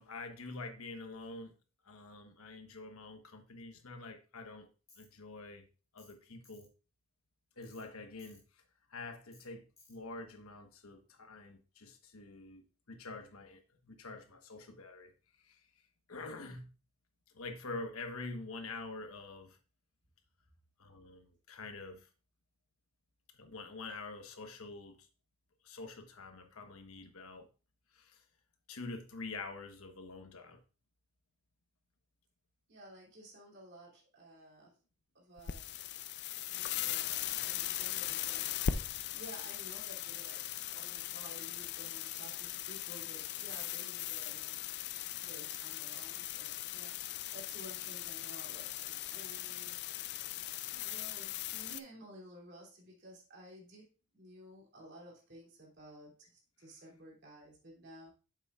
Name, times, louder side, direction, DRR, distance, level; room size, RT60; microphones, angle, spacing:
voice 1, 0.0-1.5 1.8-4.7 5.0-5.6 5.9-6.7 7.6-8.4 8.9-15.1 15.4-15.6 16.1-16.7 17.3-19.6 20.8-22.1 23.3-25.1 25.6-27.5 27.9-28.2 28.7-30.6, left 3 dB, 80° left, 1.2 m, -46 dB
Tools, 4.9-5.1 6.0-6.2 6.4-6.7 7.6-7.9 8.2-8.4 9.3-9.5 9.8-10.0, left 3 dB, 15° left, 1.8 m, -62 dB
voice 2, 32.7-34.8 35.1-35.7 36.3-44.6 45.1-49.8 50.7-53.9 54.1-58.1, right 1 dB, 50° right, 3.0 m, -54 dB
sound 1, 35.4-51.8, left 11 dB, 50° left, 0.4 m, -39 dB
8.7 x 7.1 x 2.4 m
head